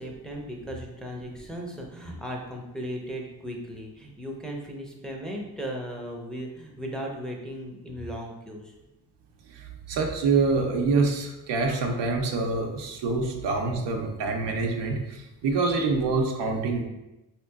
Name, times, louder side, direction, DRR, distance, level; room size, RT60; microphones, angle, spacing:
voice 1, 0.0-8.7, equal, ahead, -1 dB, 0.6 m, -36 dB
voice 2, 9.5-16.8, right 3 dB, 85° right, 2 dB, 0.6 m, -26 dB
3.8 x 2.8 x 2.3 m, 0.98 s
cardioid pair, 65°, 41 cm